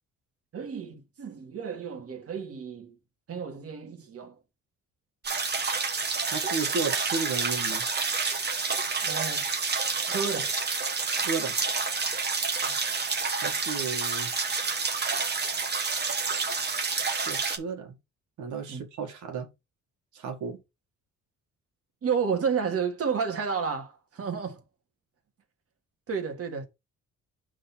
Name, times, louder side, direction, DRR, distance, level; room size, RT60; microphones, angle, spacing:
voice 1, 0.5-3.0 3.3-4.4 9.0-9.5 10.0-10.6 12.6-12.8 18.7-18.8 22.0-24.6 26.1-26.6, right 6 dB, 50° right, 1.9 m, -31 dB
sound 1, 5.2-17.6, right 4 dB, 35° right, 1.3 m, -29 dB
voice 2, 6.3-7.8 11.2-11.6 13.4-14.3 17.3-18.0 18.4-19.5 20.1-20.6, right 4 dB, 75° right, 2.0 m, -33 dB
5.2 x 3.9 x 5.8 m
cardioid pair, 90°, 30 cm